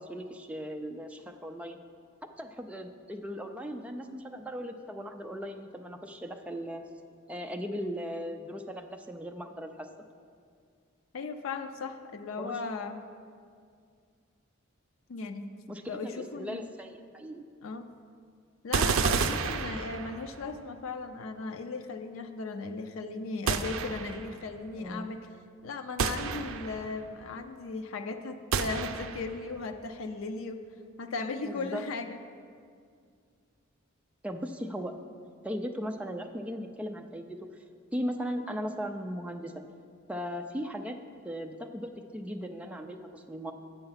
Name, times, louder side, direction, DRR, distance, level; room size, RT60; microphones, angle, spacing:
voice 1, 0.0-1.8 2.4-6.8 7.3-9.9 12.4-12.6 15.7-17.4 24.8-25.1 31.4-31.8 34.2-34.9 35.4-37.5 37.9-39.5 40.1-41.0 41.2-43.5, equal, 5° right, 4 dB, 0.3 m, -37 dB
voice 2, 11.1-13.0 15.1-15.5 15.9-16.6 17.6-17.9 18.6-25.3 25.6-30.6 31.0-32.2, left 3 dB, 80° left, 7 dB, 0.4 m, -37 dB
sound 1, 18.7-20.4 23.5-24.3 26.0-26.9 28.5-29.4, right 5 dB, 80° right, 0.4 m, -30 dB
7.8 x 5.7 x 5.6 m, 2.2 s
head